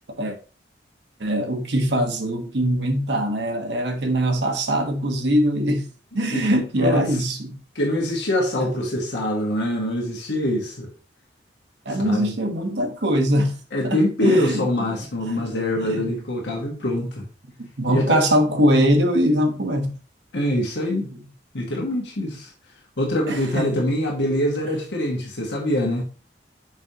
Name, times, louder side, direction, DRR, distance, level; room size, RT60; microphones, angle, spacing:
voice 1, 1.2-5.9 6.1-7.6 11.8-13.6 13.8-14.6 15.2-15.5 15.8-16.1 17.6-19.9 23.3-23.8, equal, 75° right, 1.1 m, -22 dB
voice 2, 6.8-7.1 7.7-10.9 11.9-12.3 13.7-17.2 17.9-18.2 20.3-21.1 21.5-22.5 23.0-26.0, left 1 dB, 80° left, 1.5 m, -24 dB
6.2 x 5.2 x 2.9 m
head